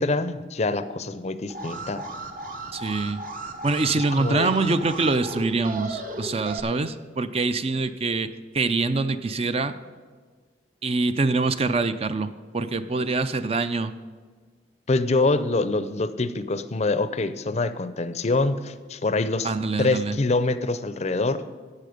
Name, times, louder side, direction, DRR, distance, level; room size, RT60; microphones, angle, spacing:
voice 1, 0.0-2.0 3.9-4.8 14.9-19.5 19.8-21.4, left 3 dB, 40° left, 13 dB, 0.5 m, -25 dB
Alarm, 1.5-6.6, right 2 dB, 50° right, 1.1 m, -36 dB
voice 2, 2.7-3.2 3.6-8.3 8.5-9.7 10.8-13.9 19.4-20.2, right 3 dB, 35° right, 11 dB, 0.5 m, -25 dB
13.0 x 8.5 x 5.1 m, 1.5 s
head